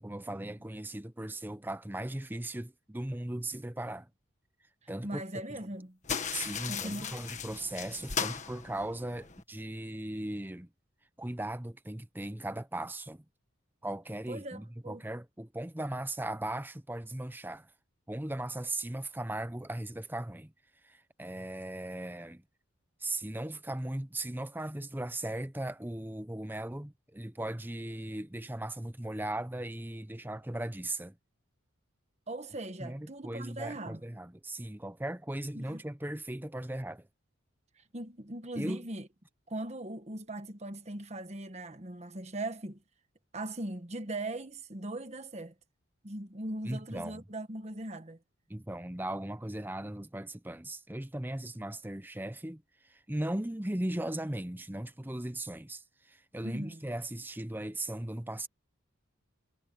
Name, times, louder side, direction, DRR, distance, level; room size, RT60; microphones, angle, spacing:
voice 1, 0.0-4.1 4.9-5.2 6.3-10.7 11.2-13.2 13.8-17.7 18.1-20.5 20.8-22.4 23.0-31.2 32.8-37.1 38.6-38.9 46.6-47.2 48.5-58.5, right 1 dB, 10° right, 0.7 m, -38 dB
voice 2, 5.0-6.0 6.7-7.1 14.3-15.0 32.3-34.0 35.5-35.8 37.8-39.1 39.5-42.8 43.3-45.5 46.0-48.2 56.4-56.9, right 1 dB, 30° right, 1.2 m, -40 dB
sound 1, 6.0-9.4, left 6 dB, 35° left, 1.6 m, -37 dB
head